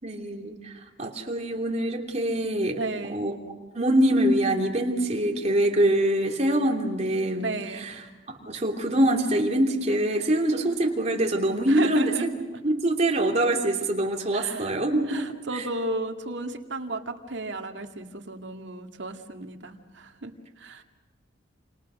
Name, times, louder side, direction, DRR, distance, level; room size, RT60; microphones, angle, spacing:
voice 1, 0.0-2.8 3.1-3.3 3.7-7.5 7.7-8.0 8.4-12.3 12.6-15.7, right 1 dB, 35° right, 2 dB, 3.0 m, -24 dB
voice 2, 2.8-3.3 7.4-7.9 11.7-12.3 14.3-14.7 15.1-20.8, right 2 dB, 70° right, 4 dB, 2.1 m, -34 dB
28.5 x 28.5 x 6.3 m, 1.1 s
head